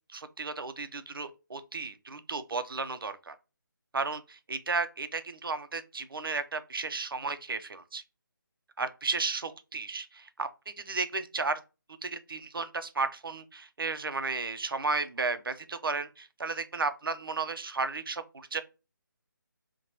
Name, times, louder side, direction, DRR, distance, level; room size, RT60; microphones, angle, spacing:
voice 1, 0.1-3.3 3.9-8.0 8.8-11.6 12.0-18.6, right 4 dB, 80° right, 0.5 m, -34 dB
2.9 x 2.2 x 3.9 m
figure-of-eight pair, 165°, 12 cm